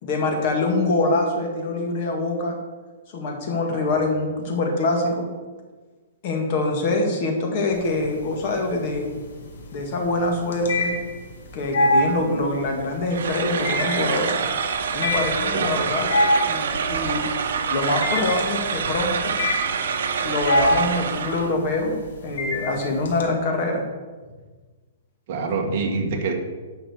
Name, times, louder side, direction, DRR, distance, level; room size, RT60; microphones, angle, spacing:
voice 1, 0.0-2.6 3.1-5.3 6.2-9.1 9.7-11.0 11.5-14.4 14.9-17.2 17.7-19.4 20.2-23.9, left 2 dB, 35° left, 2 dB, 1.9 m, -24 dB
voice 2, 3.7-4.0 15.5-15.9 25.3-26.3, right 4 dB, 35° right, 0 dB, 1.8 m, -26 dB
sound 1, 7.7-8.4 8.7-23.2, left 1 dB, 80° left, 2.2 m, -25 dB
sound 2, 13.1-21.5, right 6 dB, 65° right, 1.1 m, -26 dB
9.8 x 5.9 x 6.7 m, 1.4 s
hypercardioid pair, 175°, 0 cm